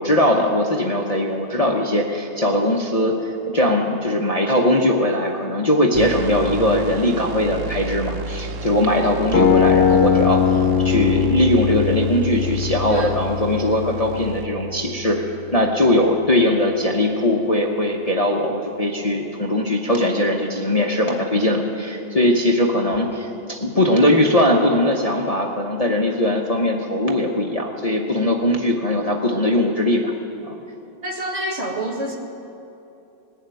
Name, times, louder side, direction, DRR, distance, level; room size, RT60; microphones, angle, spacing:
voice 1, 0.0-10.4 10.8-15.2 15.5-30.1 30.4-30.6, left 1 dB, 30° left, -1 dB, 0.9 m, -20 dB
sound 1, 5.9-14.5, right 4 dB, 70° right, 0.9 m, -32 dB
sound 2, 9.3-15.3, left 7 dB, 45° left, 1.2 m, -21 dB
voice 2, 31.0-32.2, right 1 dB, 50° right, 0 dB, 1.9 m, -27 dB
19.5 x 7.3 x 9.1 m, 2.8 s
omnidirectional pair, 1.5 m